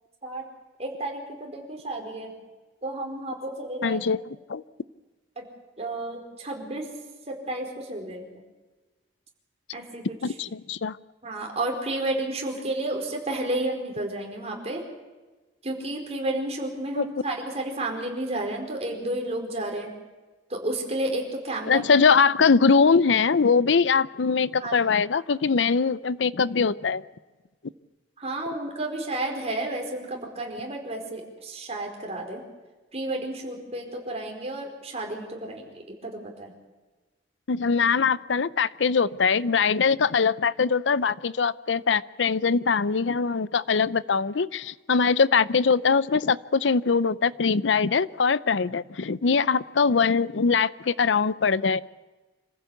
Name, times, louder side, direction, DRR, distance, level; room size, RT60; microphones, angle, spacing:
voice 1, 0.8-2.4 2.8-4.0 5.4-5.5 5.8-6.9 7.3-8.4 9.7-10.2 11.2-14.8 15.6-19.9 20.5-21.9 24.6-24.8 28.2-32.4 32.9-36.5, right 1 dB, 35° right, 1 dB, 4.7 m, -31 dB
voice 2, 3.8-4.2 4.5-4.6 10.2-11.0 17.0-17.1 21.7-27.0 37.5-51.8, left 5 dB, 85° left, 18 dB, 0.6 m, -22 dB
26.5 x 15.5 x 8.3 m, 1.2 s
head